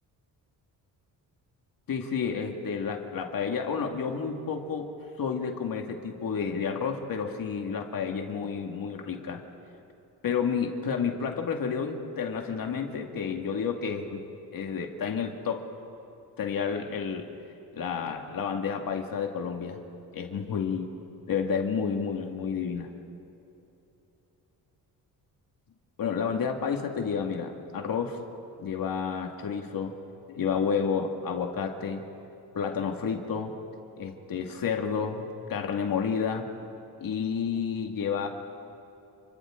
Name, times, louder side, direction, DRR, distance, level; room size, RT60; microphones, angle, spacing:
voice 1, 1.9-4.9 5.2-9.4 10.2-14.2 14.5-15.7 16.4-17.3 17.7-19.8 20.1-20.9 21.3-22.9 26.0-28.2 28.6-29.9 30.3-32.0 32.5-33.5 34.0-36.5 37.0-38.3, left 6 dB, 60° left, 3 dB, 2.2 m, -30 dB
29.5 x 25.0 x 3.8 m, 2.9 s
cardioid pair, 90°, 38 cm